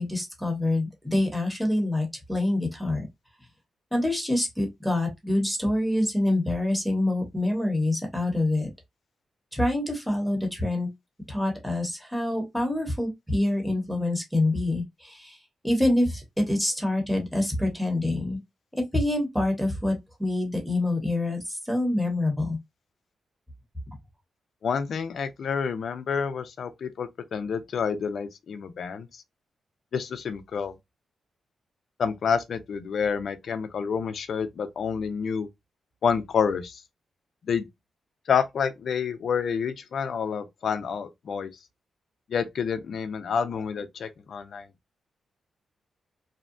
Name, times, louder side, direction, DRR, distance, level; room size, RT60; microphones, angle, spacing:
voice 1, 0.0-3.0 3.9-8.7 9.5-10.9 11.3-15.4 15.6-18.4 18.8-22.6, left 1 dB, ahead, 1.0 m, -26 dB
voice 2, 24.6-29.2 29.9-30.7 32.0-35.5 36.0-36.8 37.4-37.7 38.3-41.5 42.3-44.7, left 6 dB, 65° left, 0.5 m, -28 dB
2.7 x 2.2 x 2.5 m
cardioid pair, 80°, 0 cm